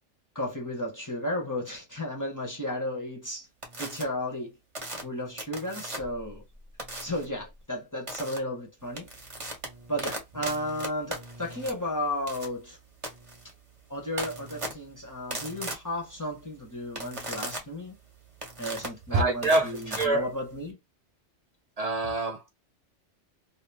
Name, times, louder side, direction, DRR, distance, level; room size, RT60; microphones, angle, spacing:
voice 1, 0.3-3.5 3.8-4.6 5.0-6.4 7.0-9.1 9.9-12.8 13.9-18.0 18.6-20.8, left 1 dB, 20° left, 0.6 m, -33 dB
sound 1, 3.6-4.0 4.7-6.2 6.8-7.3 8.1-8.4 8.8-20.7, right 1 dB, 30° right, 0.9 m, -38 dB
voice 2, 19.1-20.3 21.8-22.5, right 2 dB, 70° right, 0.3 m, -26 dB
2.5 x 2.3 x 3.2 m
omnidirectional pair, 1.3 m